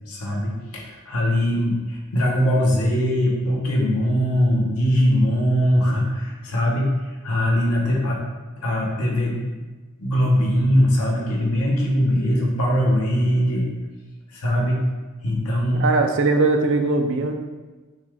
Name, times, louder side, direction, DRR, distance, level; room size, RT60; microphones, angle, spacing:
voice 1, 0.1-8.2 8.6-9.4 10.0-13.7 14.3-14.8 15.2-15.8, equal, 85° left, -2 dB, 1.1 m, -21 dB
voice 2, 15.8-17.3, right 3 dB, 55° right, 5 dB, 0.5 m, -20 dB
6.2 x 2.4 x 3.5 m, 1.3 s
head